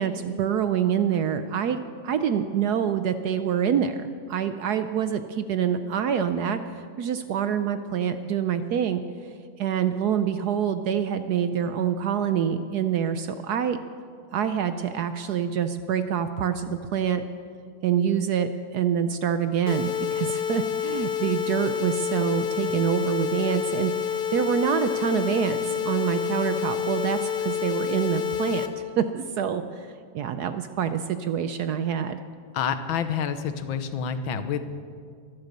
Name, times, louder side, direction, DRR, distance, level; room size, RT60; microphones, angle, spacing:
voice 1, 0.0-6.6 7.0-9.0 9.6-13.8 14.3-17.2 17.8-28.6 29.0-29.9 30.1-32.2, right 8 dB, 70° right, 10 dB, 1.0 m, -26 dB
sound 1, 19.7-28.7, left 8 dB, 50° left, 0.6 m, -28 dB
voice 2, 32.5-34.6, left 7 dB, 80° left, 10 dB, 1.6 m, -28 dB
23.5 x 8.2 x 6.7 m, 2.1 s
omnidirectional pair, 2.1 m